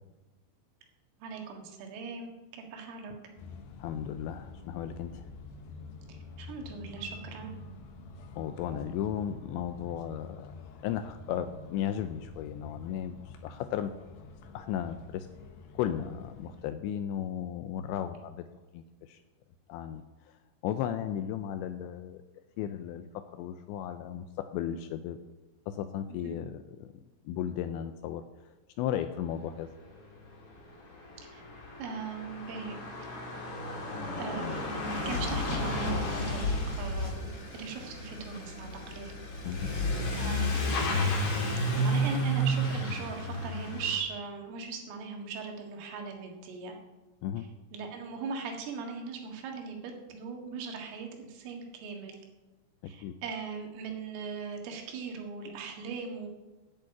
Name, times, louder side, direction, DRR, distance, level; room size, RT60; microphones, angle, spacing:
voice 1, 1.2-3.1 6.1-7.5 26.1-26.4 31.3-31.4 31.8-33.2 34.2-34.6 35.1-36.5 36.8-39.1 39.6-39.8 40.2-40.9 41.8-46.8 47.4-52.2 52.9-56.3, right 5 dB, 85° right, 2 dB, 4.3 m, -39 dB
sound 1, 3.4-16.6, left 3 dB, 70° left, 2.8 m, -48 dB
voice 2, 3.8-5.2 8.4-10.5 10.8-13.9 14.5-15.3 15.8-18.5 18.7-19.2 19.7-20.0 20.6-22.2 22.6-25.2 25.7-26.9 27.3-28.2 28.8-29.7 39.4-39.7 47.2-47.5 52.8-53.1, left 10 dB, 85° left, 9 dB, 2.6 m, -35 dB
Truck / Accelerating revving vroom, 30.3-30.4 30.6-44.0, equal, 45° left, 1.9 m, -32 dB
10.5 x 7.3 x 8.5 m, 1.1 s
omnidirectional pair, 5.7 m